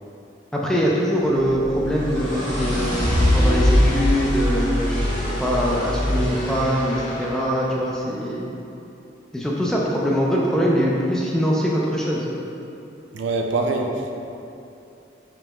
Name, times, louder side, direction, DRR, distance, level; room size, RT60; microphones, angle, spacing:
voice 1, 0.5-8.6 9.3-12.3, equal, 5° left, -4 dB, 0.3 m, -23 dB
sound 1, 1.4-7.5, left 1 dB, 30° left, 0.8 m, -22 dB
voice 2, 13.1-14.1, right 3 dB, 80° right, 2 dB, 0.4 m, -24 dB
5.2 x 3.0 x 2.2 m, 2.8 s
head